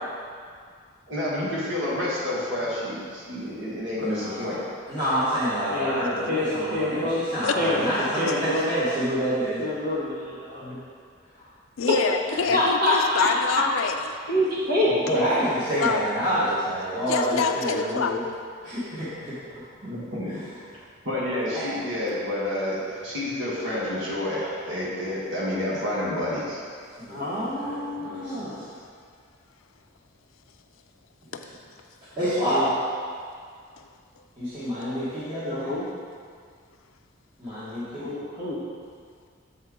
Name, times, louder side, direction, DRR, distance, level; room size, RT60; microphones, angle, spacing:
voice 1, 1.1-4.6 19.8-20.3 21.0-26.6, left 1 dB, 65° right, -7 dB, 1.5 m, -29 dB
voice 2, 4.0-4.6 4.9-9.7 10.6-10.8 12.5-12.6 15.0-18.2 18.6-19.9 20.2-20.4 20.7-20.8 21.5-21.6 27.0-28.7 31.4-31.5 32.2-32.7 34.4-35.8 37.4-38.1, equal, 20° right, -14 dB, 1.5 m, -28 dB
voice 3, 5.7-6.0 6.3-7.2 7.5-7.8 8.2-8.7 9.6-10.6 12.5-13.3 13.5-13.6 14.3-14.9 24.3-24.6 27.1-28.6 32.5-32.7 35.4-35.9 38.0-38.6, left 1 dB, 50° right, -7 dB, 1.6 m, -26 dB
voice 4, 11.8-13.9 15.7-16.1 17.1-18.1 31.3-31.4 33.8-33.9, left 6 dB, 80° left, 6 dB, 0.4 m, -26 dB
7.6 x 4.3 x 3.7 m, 2.1 s
head